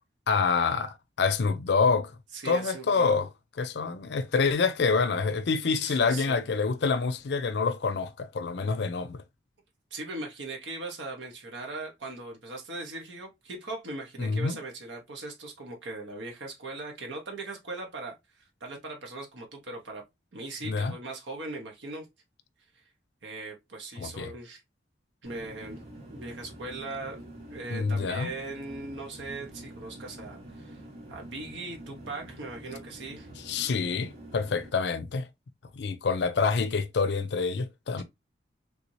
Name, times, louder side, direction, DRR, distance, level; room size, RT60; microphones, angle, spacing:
voice 1, 0.3-2.1 2.4-3.3 3.6-9.2 14.2-14.6 20.6-20.9 24.0-24.3 27.7-28.3 33.4-35.3 35.7-38.0, left 4 dB, 65° left, 0.4 m, -27 dB
voice 2, 2.3-3.2 5.8-6.4 9.9-18.2 18.6-20.0 20.3-22.1 23.2-24.6 25.2-25.8 26.1-27.2 27.5-30.8 31.1-33.3, right 2 dB, 80° right, 1.0 m, -39 dB
sound 1, 25.2-34.7, right 1 dB, 55° right, 1.9 m, -46 dB
3.4 x 2.7 x 3.0 m
head